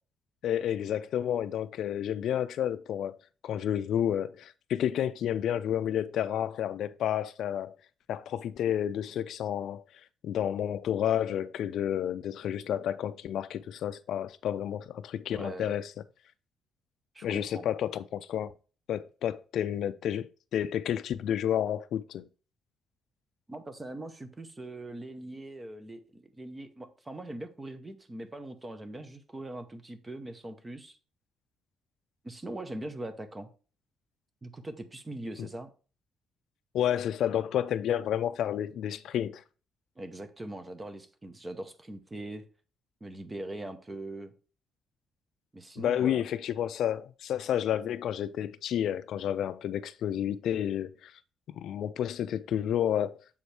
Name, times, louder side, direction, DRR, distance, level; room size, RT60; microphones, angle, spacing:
voice 1, 0.4-3.2 3.4-7.8 8.1-9.8 10.2-15.9 17.2-18.5 18.9-22.3 35.4-35.5 36.7-39.4 45.8-51.1 51.5-53.2, left 10 dB, 65° left, 0.3 m, -30 dB
voice 2, 15.3-15.8 17.1-17.6 23.5-31.0 32.2-33.5 34.4-35.7 40.0-42.5 43.0-44.3 45.5-46.2, right 1 dB, 15° right, 0.7 m, -41 dB
7.0 x 4.4 x 3.3 m
cardioid pair, 165°, 0 cm